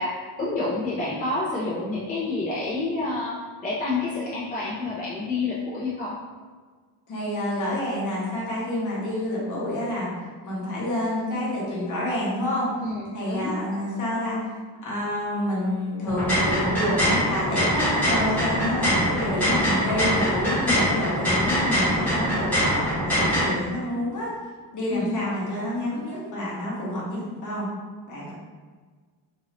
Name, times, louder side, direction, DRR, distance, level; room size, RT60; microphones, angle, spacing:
voice 1, 0.0-6.2 12.8-13.5 16.8-17.0 18.0-18.3 20.6-20.9 24.9-25.2, left 3 dB, 20° left, -9 dB, 0.6 m, -29 dB
voice 2, 7.1-10.1 10.4-12.7 13.1-14.4 14.8-24.3 24.7-27.7 28.1-28.3, left 1 dB, 45° left, -6 dB, 1.0 m, -28 dB
sound 1, 16.1-23.4, equal, 5° left, 1.2 m, -23 dB
3.1 x 2.6 x 2.9 m, 1.5 s
cardioid pair, 160°, 43 cm